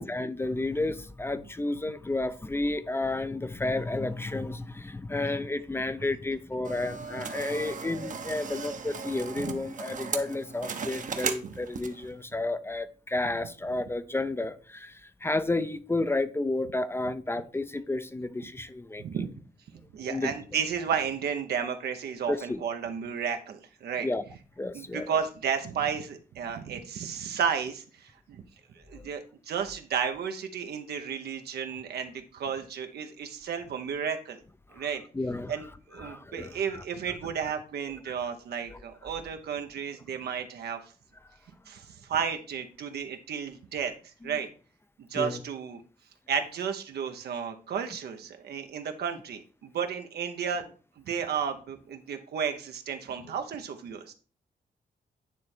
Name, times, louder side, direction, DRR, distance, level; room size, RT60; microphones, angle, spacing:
voice 1, 0.0-19.0 20.0-20.3 22.3-22.6 24.0-24.2 24.6-25.1 29.0-29.1 34.7-34.9 35.1-35.7 36.0-36.8 38.7-38.8 44.2-44.4 45.1-45.4, left 2 dB, 15° left, 0.4 m, -31 dB
sound 1, 6.6-12.1, right 5 dB, 55° right, 0.8 m, -37 dB
voice 2, 19.0-19.3 19.9-24.1 24.7-28.4 28.7-34.4 34.7-35.0 35.5-40.8 41.7-44.5 45.1-45.8 46.3-54.1, right 7 dB, 85° right, 0.8 m, -33 dB
9.1 x 3.2 x 4.3 m
cardioid pair, 100°, 16 cm